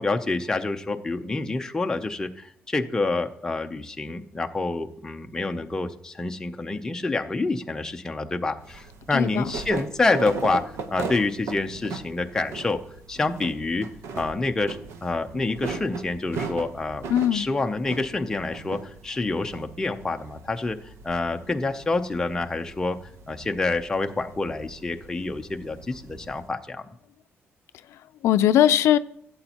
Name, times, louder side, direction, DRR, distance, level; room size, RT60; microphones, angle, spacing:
voice 1, 0.0-12.8 13.1-13.9 14.1-17.0 17.3-20.8 21.0-23.0 23.3-26.9, left 3 dB, 10° left, 0.6 m, -27 dB
sound 1, 8.6-26.4, right 4 dB, 90° right, 0.9 m, -39 dB
voice 2, 9.1-9.5 17.1-17.5 27.9-29.0, left 11 dB, 80° left, 0.4 m, -20 dB
16.0 x 7.9 x 2.9 m
cardioid pair, 170°, 5 cm